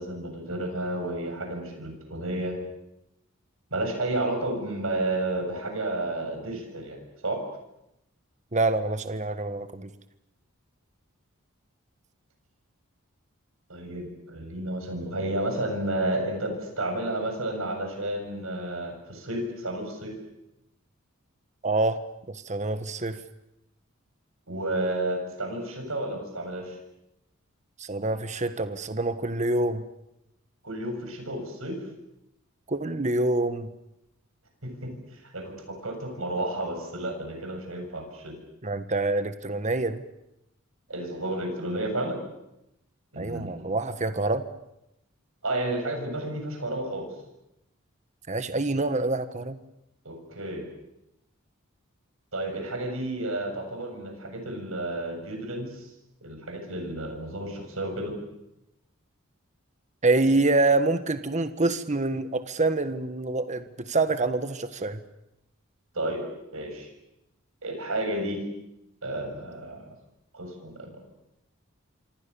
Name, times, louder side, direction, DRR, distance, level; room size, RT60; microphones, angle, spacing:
voice 1, 0.0-2.5 3.7-7.4 13.7-20.1 24.5-26.8 30.6-31.8 34.6-34.9 35.2-38.3 40.9-42.2 43.1-43.7 45.4-47.1 50.0-50.6 52.3-55.9 56.2-58.2 65.9-66.9 67.6-68.4 69.0-69.9 70.3-71.1, right 1 dB, 70° right, 4 dB, 7.5 m, -31 dB
voice 2, 8.5-9.9 21.6-22.0 22.3-23.2 27.8-29.8 32.7-33.7 38.6-40.0 43.2-44.5 48.3-49.6 60.0-65.0, right 2 dB, 35° right, 10 dB, 1.4 m, -26 dB
27.5 x 25.5 x 7.1 m, 0.86 s
head